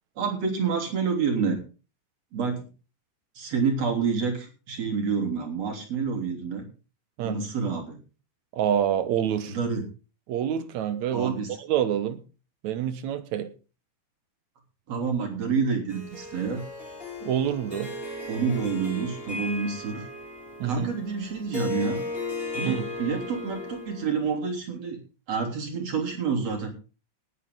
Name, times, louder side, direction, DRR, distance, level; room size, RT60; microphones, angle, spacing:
voice 1, 0.2-1.6 2.3-2.7 3.4-6.7 7.2-8.0 9.5-9.9 11.1-11.5 14.9-16.6 18.3-20.1 20.6-22.0 22.5-25.0 25.3-26.7, right 5 dB, 50° right, 4.2 m, -28 dB
voice 2, 8.5-9.6 10.3-12.2 12.6-13.5 17.2-17.9 20.6-20.9 22.7-22.9, right 10 dB, 65° right, 2.3 m, -27 dB
Harp, 15.9-24.3, left 2 dB, 15° left, 6.7 m, -36 dB
19.0 x 9.3 x 3.8 m
omnidirectional pair, 3.8 m